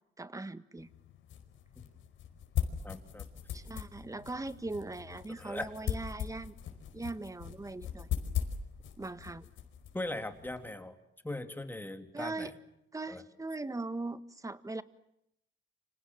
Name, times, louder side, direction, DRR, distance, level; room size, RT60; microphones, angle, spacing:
voice 1, 0.2-0.9 3.5-6.6 6.9-8.1 9.0-9.5 12.1-12.5 12.9-14.8, right 2 dB, 15° right, 12 dB, 1.7 m, -40 dB
sound 1, 0.8-10.7, left 9 dB, 80° left, 5.0 m, -40 dB
voice 2, 2.8-3.2 5.4-5.7 9.9-10.9 11.2-12.5 13.1-13.2, left 1 dB, 10° left, 7 dB, 3.6 m, -39 dB
29.5 x 26.5 x 7.6 m, 0.77 s
cardioid pair, 90°, 20 cm